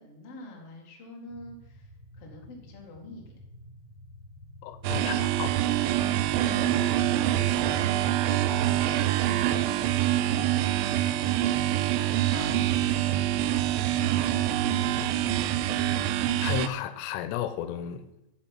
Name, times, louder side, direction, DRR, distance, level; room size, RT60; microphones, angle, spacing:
voice 1, 0.0-1.9 2.1-3.4 4.8-5.5 6.6-10.1 11.0-12.5 12.8-13.8, left 2 dB, 55° left, -1 dB, 1.7 m, -47 dB
sound 1, 1.3-7.9, equal, 55° right, 1.8 m, -50 dB
voice 2, 4.6-5.6 16.4-18.1, left 10 dB, 85° left, 12 dB, 3.2 m, -33 dB
sound 2, 4.8-16.7, right 12 dB, 80° right, 2.7 m, -25 dB
7.4 x 7.0 x 6.0 m, 0.93 s
omnidirectional pair, 5.6 m